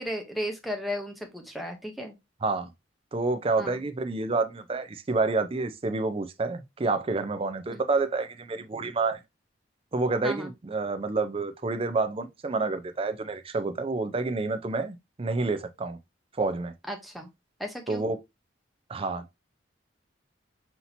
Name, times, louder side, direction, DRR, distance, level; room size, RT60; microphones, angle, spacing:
voice 1, 0.0-2.1 3.6-3.8 7.7-7.8 10.2-10.5 16.9-17.3 17.6-18.0, equal, ahead, 0.8 m, -34 dB
voice 2, 3.1-9.2 9.9-16.0 16.4-16.7 17.9-18.2 18.9-19.4, right 3 dB, 30° right, 0.4 m, -28 dB
5.7 x 2.8 x 2.7 m
head